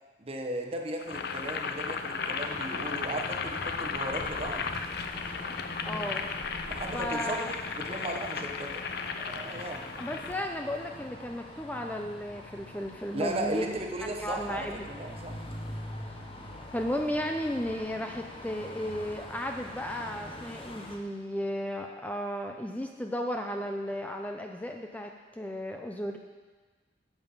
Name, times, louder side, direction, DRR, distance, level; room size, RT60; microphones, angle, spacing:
voice 1, 0.2-4.7 5.9-6.0 6.6-8.9 9.2-9.9 13.1-15.4, right 1 dB, 35° right, 3 dB, 1.1 m, -36 dB
Boiling, 1.0-10.4, left 5 dB, 60° left, 0.7 m, -35 dB
sound 1, 2.4-21.0, left 1 dB, 30° left, 1.2 m, -44 dB
voice 2, 5.8-6.3 6.9-7.5 10.0-13.7 14.2-14.9 16.7-26.2, equal, 10° left, 3 dB, 0.6 m, -34 dB
8.9 x 7.8 x 7.3 m, 1.3 s
head